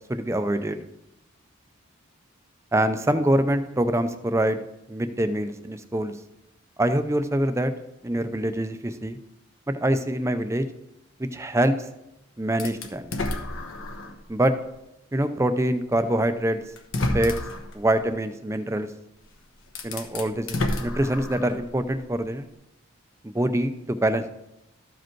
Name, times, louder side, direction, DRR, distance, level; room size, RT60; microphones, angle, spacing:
voice 1, 0.1-0.8 2.7-4.6 4.9-6.1 6.8-7.7 8.0-9.2 9.8-10.7 11.2-11.9 12.4-13.1 14.3-14.5 15.1-16.6 17.1-17.3 17.7-18.9 19.8-22.5 23.2-24.3, right 1 dB, 15° right, 9 dB, 0.5 m, -24 dB
sound 1, 12.6-14.2 14.8-14.9 16.1-16.2 16.8-17.7 19.2-19.3 19.7-21.6, left 2 dB, 70° left, 1.1 m, -30 dB
13.5 x 5.1 x 4.5 m, 0.87 s
head